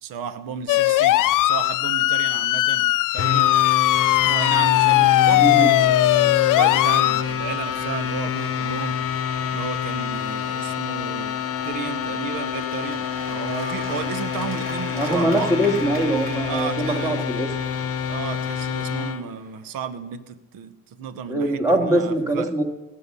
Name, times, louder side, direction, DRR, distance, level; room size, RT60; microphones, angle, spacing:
voice 1, 0.0-2.9 3.1-3.5 4.2-9.0 9.5-11.3 11.6-15.5 16.4-17.2 18.1-22.5, right 8 dB, 85° right, 13 dB, 0.9 m, -33 dB
sound 1, 0.7-7.2, left 16 dB, 70° left, 0.5 m, -18 dB
sound 2, 3.2-19.2, left 8 dB, 45° left, 0.9 m, -27 dB
voice 2, 5.3-5.7 15.0-17.5 21.3-22.6, right 1 dB, 10° right, 1 dB, 1.8 m, -22 dB
Cheering / Applause / Crowd, 5.3-19.8, equal, 30° right, 3.3 m, -40 dB
18.5 x 6.7 x 5.5 m, 1.0 s
cardioid pair, 90°, 33 cm